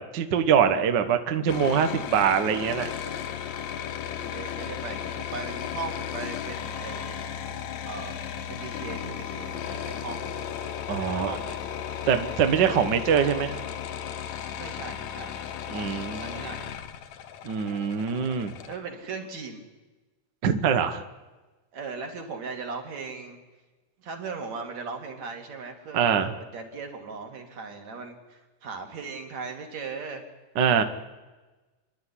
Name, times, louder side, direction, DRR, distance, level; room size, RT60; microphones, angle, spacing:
voice 1, 0.0-2.9 10.9-11.4 12.1-13.6 15.7-16.5 17.4-18.5 20.4-21.0 25.9-26.3 30.5-30.8, right 7 dB, 75° right, 8 dB, 1.0 m, -24 dB
sound 1, 1.5-18.8, left 9 dB, 65° left, 2.2 m, -35 dB
voice 2, 3.0-3.4 4.2-7.2 7.8-8.1 8.5-10.3 11.0-11.6 14.5-15.4 15.7-16.7 18.7-19.6 21.7-23.4 24.0-30.2 30.8-30.9, right 4 dB, 55° right, 3 dB, 3.7 m, -38 dB
28.5 x 11.0 x 10.0 m, 1.2 s
omnidirectional pair, 3.8 m